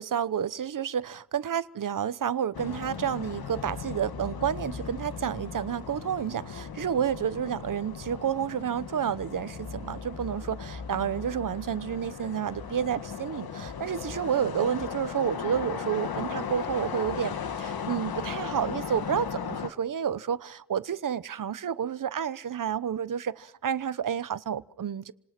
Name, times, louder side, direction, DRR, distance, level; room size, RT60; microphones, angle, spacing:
voice 1, 0.0-25.1, right 8 dB, 55° right, 1.0 m, -30 dB
sound 1, 2.5-19.7, left 6 dB, 65° left, 2.1 m, -37 dB
29.0 x 27.0 x 6.0 m
wide cardioid pair, 155°, 39 cm